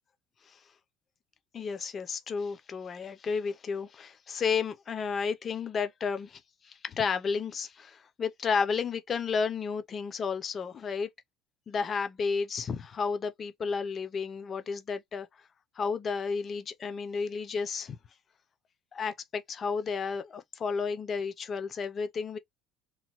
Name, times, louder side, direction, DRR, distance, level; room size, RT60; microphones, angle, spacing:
voice 1, 1.5-11.1 11.7-15.3 15.8-18.0 18.9-22.4, left 5 dB, 30° left, 0.5 m, -32 dB
2.9 x 2.1 x 2.9 m
cardioid pair, 145°, 0 cm